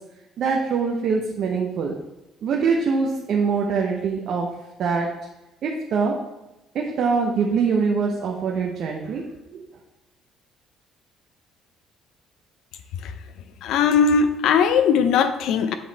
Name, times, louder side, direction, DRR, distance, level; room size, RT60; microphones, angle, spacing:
voice 1, 0.4-2.0 2.4-4.5 4.8-5.2 5.6-6.2 6.7-9.6, right 5 dB, 60° right, 0 dB, 0.7 m, -23 dB
voice 2, 13.6-15.7, left 6 dB, 75° left, 9 dB, 0.5 m, -19 dB
7.7 x 3.1 x 4.0 m, 0.96 s
cardioid pair, 105°, 0 cm